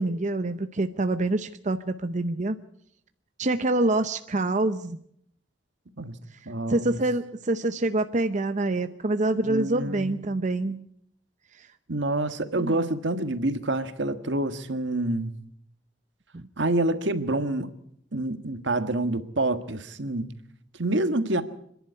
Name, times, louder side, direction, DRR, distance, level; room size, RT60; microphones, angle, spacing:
voice 1, 0.0-2.6 3.4-5.0 6.7-10.8 11.5-11.7 12.6-12.8 16.3-16.5, right 2 dB, 40° right, 0.7 m, -26 dB
voice 2, 6.4-7.0 9.4-10.3 11.9-15.3 16.6-17.7 18.1-20.3 20.8-21.4, right 2 dB, 75° right, 1.6 m, -27 dB
26.5 x 11.0 x 9.7 m
head